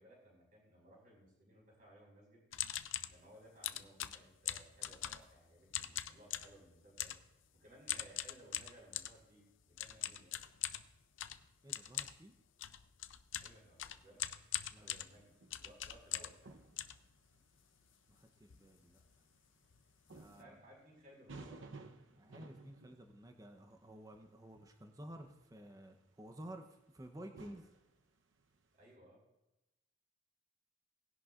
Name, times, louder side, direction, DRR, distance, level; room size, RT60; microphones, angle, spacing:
voice 1, 0.0-2.4 3.1-7.1 7.5-10.3 13.4-14.2 14.8-15.3 15.6-16.6 20.4-21.8 28.7-29.2, right 1 dB, 45° right, -2 dB, 4.9 m, -61 dB
sound 1, 2.5-3.2 3.6-5.4 5.7-6.6 7.0-7.3 7.9-9.2 9.8-16.4 16.8-17.6 18.1-18.2 18.4-18.7 18.9-19.1 19.7-19.8 20.1-20.3, left 12 dB, 85° left, 0.6 m, -42 dB
voice 2, 11.6-12.3 14.7-14.9 18.1-19.0 20.1-20.5 22.2-27.7, right 1 dB, 20° right, 5 dB, 0.8 m, -53 dB
sound 2, 15.0-15.7 16.4-17.3 18.4-18.5 19.6-19.7 20.1-24.3 25.4-26.4 27.3-28.7, right 3 dB, 85° right, 0.9 m, -55 dB
19.0 x 10.5 x 2.5 m, 0.95 s
head